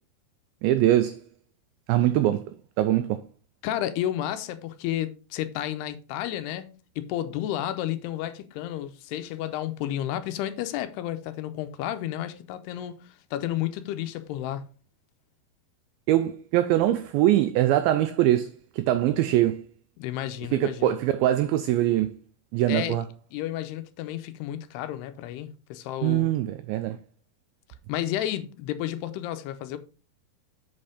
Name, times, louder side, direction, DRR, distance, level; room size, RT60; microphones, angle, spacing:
voice 1, 0.6-1.2 1.9-2.5 2.8-3.2 16.1-19.6 20.5-22.1 22.5-23.1 26.0-27.0, right 13 dB, 90° right, 2.1 m, -23 dB
voice 2, 3.6-14.6 20.0-21.0 22.7-23.0 23.3-26.3 27.9-29.8, left 12 dB, 85° left, 2.7 m, -32 dB
8.0 x 4.4 x 5.0 m
omnidirectional pair, 4.7 m